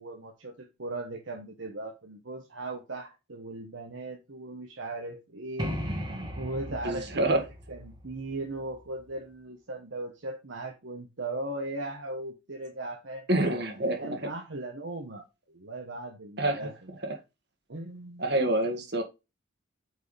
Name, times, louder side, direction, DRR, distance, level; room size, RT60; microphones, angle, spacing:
voice 1, 0.0-13.6 14.0-16.9 17.7-18.2, right 2 dB, 75° right, 1.2 m, -38 dB
sound 1, 5.6-9.2, equal, 25° right, 1.7 m, -37 dB
voice 2, 6.8-7.4 13.3-14.2 16.4-16.7 17.0-17.1 18.2-19.0, right 1 dB, 60° right, 1.9 m, -27 dB
9.2 x 4.7 x 3.3 m
head